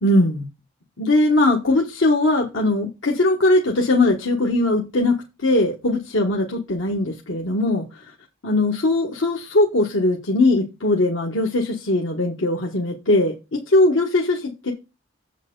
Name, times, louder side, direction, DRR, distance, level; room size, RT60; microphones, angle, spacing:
voice 1, 0.0-0.5 1.0-8.0 8.4-14.7, left 2 dB, 90° left, 1.3 m, -20 dB
7.8 x 7.3 x 3.8 m
head